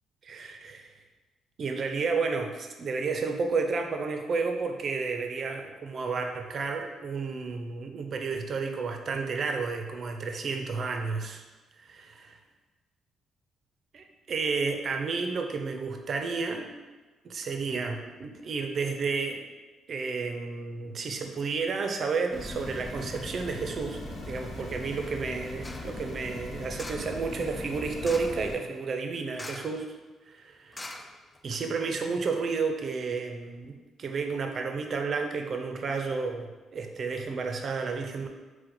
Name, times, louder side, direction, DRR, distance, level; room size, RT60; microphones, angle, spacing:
voice 1, 0.2-0.9 1.6-11.4 11.8-11.9 13.9-16.7 17.2-19.4 19.9-29.9 30.3-30.9 31.4-38.3, right 4 dB, 50° right, 4 dB, 0.5 m, -31 dB
sound 1, 22.3-28.6, left 2 dB, 50° left, 0.8 m, -39 dB
sound 2, 25.6-26.0 26.8-27.2 28.0-28.5 29.3-29.9 30.1-30.2 30.7-31.6 32.1-32.2, left 1 dB, 20° left, 0.3 m, -42 dB
4.6 x 2.1 x 3.7 m, 1.2 s
cardioid pair, 90°, 0 cm